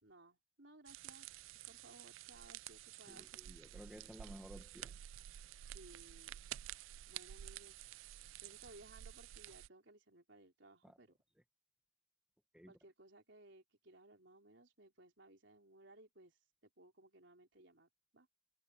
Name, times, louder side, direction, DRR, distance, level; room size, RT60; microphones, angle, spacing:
voice 1, 0.0-1.3 1.7-3.3 5.6-6.4 7.1-7.8 8.4-11.1 12.7-16.4 16.6-18.3, right 2 dB, 65° right, 4.7 m, -61 dB
sound 1, 0.9-9.7, right 12 dB, 85° right, 0.3 m, -51 dB
voice 2, 3.1-5.0 10.8-11.0 12.5-12.7, equal, 5° right, 1.3 m, -55 dB
head